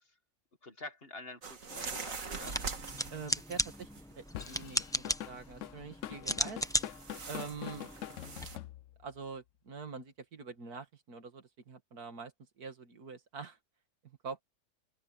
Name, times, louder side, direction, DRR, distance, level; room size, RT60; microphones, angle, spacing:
voice 1, 0.6-2.6 6.3-6.5, left 2 dB, 40° left, 1.9 m, -48 dB
sound 1, 1.4-4.1 4.4-5.1 6.6-8.6, right 4 dB, 60° right, 2.2 m, -43 dB
sound 2, 2.4-8.5, equal, 5° left, 0.6 m, -37 dB
voice 2, 3.1-3.9 4.2-6.6 7.2-7.9 9.0-12.3 12.6-13.6 14.0-14.4, right 5 dB, 75° right, 2.5 m, -45 dB
Drum kit / Drum, 4.3-9.2, left 11 dB, 65° left, 0.9 m, -44 dB
open air
omnidirectional pair, 1.6 m